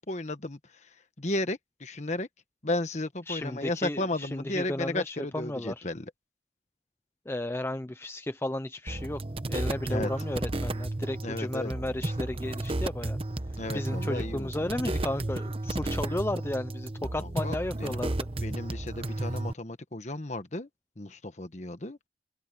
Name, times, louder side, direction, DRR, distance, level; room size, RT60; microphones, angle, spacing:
voice 1, 0.1-0.6 1.2-2.3 2.6-6.0 9.9-10.1 11.2-11.7 13.6-14.5 17.2-18.0 18.4-20.7 21.0-22.0, left 2 dB, 40° left, 1.4 m, -34 dB
voice 2, 3.3-5.9 7.3-9.2 9.5-13.2 13.7-18.3, left 1 dB, 15° left, 0.5 m, -34 dB
sound 1, 8.9-19.5, right 2 dB, 30° right, 0.9 m, -33 dB
head